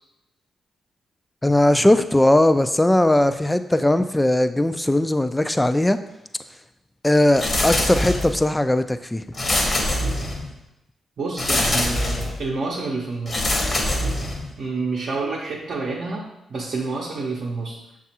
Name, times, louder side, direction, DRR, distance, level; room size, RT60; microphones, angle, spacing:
voice 1, 1.4-6.0 7.0-9.2, left 1 dB, 15° left, 11 dB, 0.3 m, -19 dB
sound 1, 7.3-8.5 9.3-10.6 11.4-12.4 13.3-14.6, left 1 dB, 40° left, 0.9 m, -23 dB
voice 2, 11.2-13.6 14.6-17.8, right 3 dB, 60° right, -3 dB, 0.7 m, -28 dB
6.4 x 2.4 x 2.8 m, 0.89 s
hypercardioid pair, 45°, 0 cm